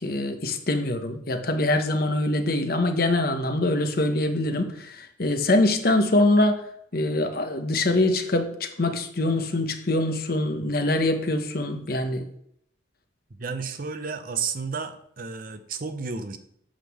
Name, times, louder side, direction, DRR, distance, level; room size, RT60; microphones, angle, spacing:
voice 1, 0.0-6.6 6.9-12.3, left 2 dB, 50° left, 6 dB, 1.0 m, -24 dB
voice 2, 13.4-16.4, right 5 dB, 45° right, 9 dB, 0.7 m, -32 dB
8.7 x 3.8 x 6.3 m, 0.69 s
head